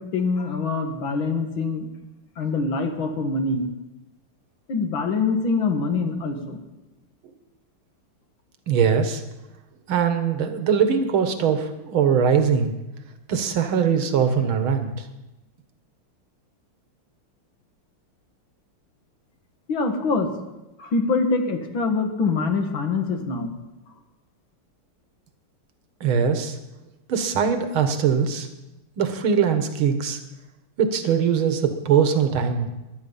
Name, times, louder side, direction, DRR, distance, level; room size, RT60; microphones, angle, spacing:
voice 1, 0.0-1.9 2.4-3.7 4.7-6.6 19.7-20.3 20.8-23.5, left 4 dB, 65° left, 5 dB, 2.4 m, -24 dB
voice 2, 8.7-9.2 9.9-12.7 13.3-14.9 26.0-26.6 27.1-28.5 29.0-30.2 30.8-32.7, right 7 dB, 70° right, 7 dB, 2.2 m, -21 dB
22.0 x 10.0 x 5.5 m, 1.0 s
omnidirectional pair, 2.4 m